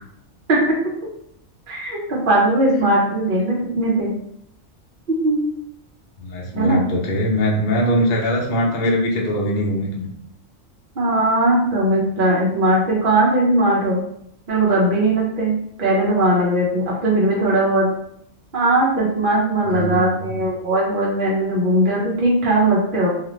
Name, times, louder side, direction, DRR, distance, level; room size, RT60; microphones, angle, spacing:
voice 1, 1.7-4.1 5.1-5.4 6.5-6.8 11.0-14.0 14.5-17.9 18.5-23.1, right 1 dB, 50° right, -5 dB, 0.8 m, -19 dB
voice 2, 6.2-10.1 19.6-20.4, equal, 50° left, -2 dB, 0.7 m, -21 dB
2.7 x 2.4 x 3.0 m, 0.70 s
omnidirectional pair, 1.4 m